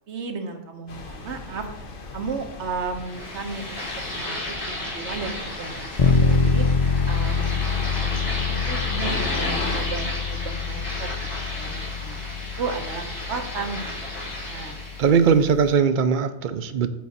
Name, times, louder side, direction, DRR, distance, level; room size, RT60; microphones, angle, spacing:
voice 1, 0.1-1.7 2.1-3.9 4.1-6.7 7.1-11.1 11.5-12.3 12.6-14.8, right 4 dB, 85° right, 5 dB, 1.3 m, -34 dB
sound 1, 0.9-9.9, left 3 dB, 55° left, 0.9 m, -37 dB
sound 2, 3.0-15.2, left 1 dB, 80° left, 3.3 m, -33 dB
sound 3, 6.0-15.7, left 5 dB, 40° left, 0.5 m, -25 dB
voice 2, 15.0-16.9, right 6 dB, 55° right, 10 dB, 0.6 m, -19 dB
8.2 x 4.7 x 4.1 m, 0.93 s
omnidirectional pair, 1.1 m